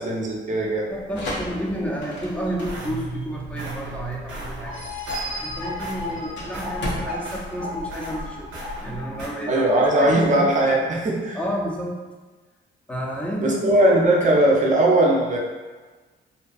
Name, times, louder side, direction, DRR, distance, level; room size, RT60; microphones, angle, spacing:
voice 1, 0.0-0.9 9.5-11.4 13.4-15.4, right 1 dB, 40° right, -2 dB, 0.6 m, -19 dB
sound 1, 0.9-8.5, left 1 dB, 65° left, 0.6 m, -36 dB
voice 2, 0.9-4.8 5.2-8.5 8.8-9.6 10.0-10.1 11.3-12.0 12.9-13.7, right 1 dB, 5° left, -2 dB, 0.5 m, -30 dB
sound 2, 2.1-9.3, right 1 dB, 80° right, 0.6 m, -38 dB
sound 3, 4.7-10.1, left 1 dB, 45° left, 0.9 m, -34 dB
2.7 x 2.1 x 2.5 m, 1.3 s
cardioid pair, 90°, 20 cm